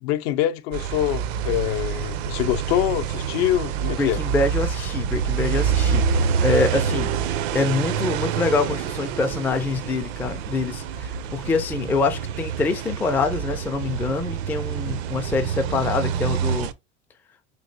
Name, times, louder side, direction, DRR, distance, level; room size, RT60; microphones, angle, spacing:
voice 1, 0.0-4.2, left 13 dB, 60° left, 0.6 m, -24 dB
sound 1, 0.7-16.7, right 7 dB, 60° right, 0.5 m, -26 dB
voice 2, 4.0-7.1 7.5-16.7, left 3 dB, 5° left, 0.3 m, -25 dB
3.1 x 2.9 x 2.6 m
hypercardioid pair, 90°, 35 cm